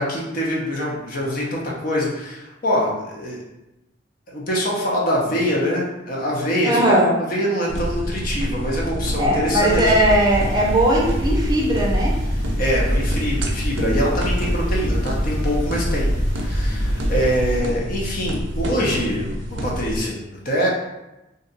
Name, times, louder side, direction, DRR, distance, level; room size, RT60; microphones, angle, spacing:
voice 1, 0.0-3.4 4.3-9.9 12.6-16.1 16.4-20.7, equal, 50° left, -3 dB, 0.8 m, -24 dB
voice 2, 6.6-7.1 9.2-12.2, right 1 dB, 20° right, -3 dB, 0.6 m, -18 dB
sound 1, 7.7-20.0, equal, 70° right, 0.5 m, -29 dB
sound 2, 9.6-17.6, equal, 85° left, 0.9 m, -24 dB
2.6 x 2.4 x 4.0 m, 0.96 s
head